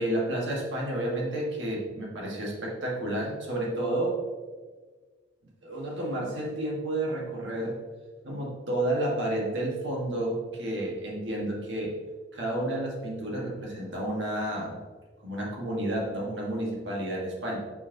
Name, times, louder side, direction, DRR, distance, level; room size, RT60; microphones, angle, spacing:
voice 1, 0.0-4.2 5.6-7.8 8.2-11.9 12.3-14.8 15.2-17.6, right 1 dB, 90° right, -3 dB, 1.5 m, -31 dB
6.6 x 5.3 x 2.8 m, 1.4 s
head